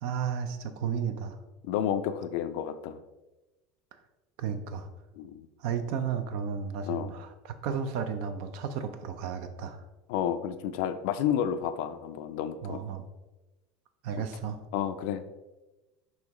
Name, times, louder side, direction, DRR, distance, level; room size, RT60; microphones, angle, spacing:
voice 1, 0.0-1.4 4.4-4.9 5.6-9.8 12.6-13.1 14.0-14.6, right 7 dB, 70° right, 9 dB, 0.4 m, -33 dB
voice 2, 1.6-3.0 5.2-5.5 6.9-7.1 10.1-12.8 14.1-14.2 14.7-15.3, left 9 dB, 70° left, 11 dB, 0.3 m, -31 dB
5.5 x 3.0 x 3.0 m, 1.1 s
supercardioid pair, 100°, 0 cm